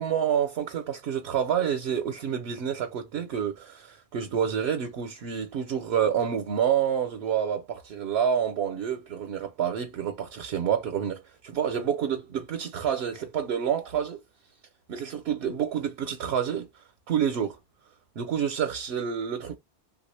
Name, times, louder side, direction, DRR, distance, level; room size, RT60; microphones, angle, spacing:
voice 1, 0.0-14.2 14.9-16.7 17.1-17.6 18.2-19.6, right 8 dB, 75° right, 0.9 m, -28 dB
3.2 x 2.4 x 3.1 m
omnidirectional pair, 1.1 m